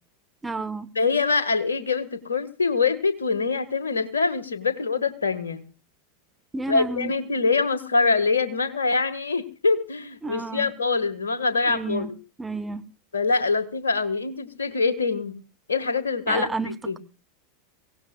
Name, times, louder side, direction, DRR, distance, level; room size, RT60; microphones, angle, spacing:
voice 1, 0.4-0.9 6.5-7.1 10.2-10.7 11.6-12.1 12.4-12.9 16.3-17.0, right 3 dB, 10° right, 1.2 m, -31 dB
voice 2, 1.0-5.6 6.7-12.1 13.1-15.4 15.7-17.0, left 4 dB, 75° left, 1.7 m, -24 dB
23.5 x 17.5 x 2.4 m
figure-of-eight pair, 85°, 0 cm